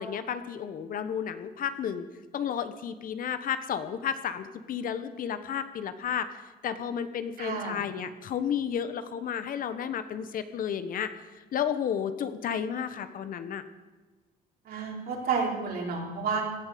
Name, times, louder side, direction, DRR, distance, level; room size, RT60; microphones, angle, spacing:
voice 1, 0.0-2.1 2.3-11.1 11.5-13.6, left 8 dB, 55° left, 11 dB, 1.3 m, -32 dB
voice 2, 7.4-7.8 14.7-16.4, right 5 dB, 60° right, -1 dB, 4.9 m, -30 dB
18.0 x 11.0 x 6.9 m, 1.3 s
cardioid pair, 110°, 17 cm